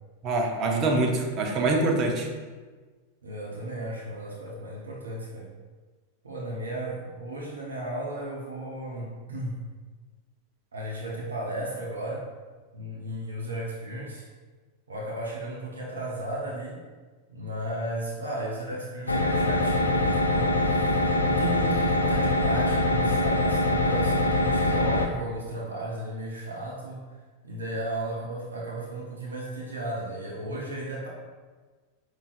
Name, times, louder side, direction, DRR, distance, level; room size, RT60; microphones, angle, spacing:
voice 1, 0.2-2.3, right 2 dB, 35° right, 1 dB, 0.6 m, -24 dB
voice 2, 3.2-5.5 6.2-9.6 10.7-12.3 12.7-14.3 14.9-16.8 17.3-27.0 27.4-31.1, right 1 dB, 70° right, -3 dB, 0.7 m, -35 dB
sound 1, 19.1-25.1, left 1 dB, 80° left, 0.3 m, -23 dB
5.2 x 3.1 x 2.5 m, 1.4 s
figure-of-eight pair, 90°, 0 cm